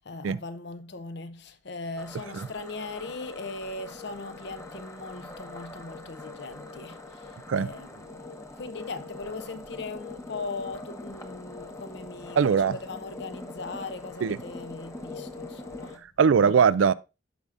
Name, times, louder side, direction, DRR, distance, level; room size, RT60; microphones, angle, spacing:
voice 1, 0.0-12.6 12.8-16.0, left 3 dB, 60° left, 0.7 m, -39 dB
sound 1, 2.0-16.0, left 2 dB, 15° left, 0.9 m, -43 dB
voice 2, 12.4-12.7 14.2-14.4 16.2-16.9, right 6 dB, 90° right, 0.4 m, -20 dB
14.0 x 4.9 x 2.5 m
head